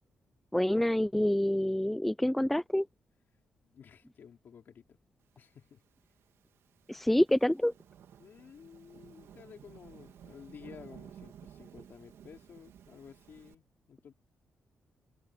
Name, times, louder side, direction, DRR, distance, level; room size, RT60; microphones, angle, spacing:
voice 1, 0.5-2.9 6.9-7.7, left 1 dB, 5° left, 0.5 m, -27 dB
voice 2, 3.7-5.0 5.4-5.8 8.2-14.1, left 7 dB, 50° left, 3.9 m, -53 dB
Thunderstorm / Rain, 5.8-13.5, right 9 dB, 80° right, 2.6 m, -54 dB
wide cardioid pair, 165°, 4 cm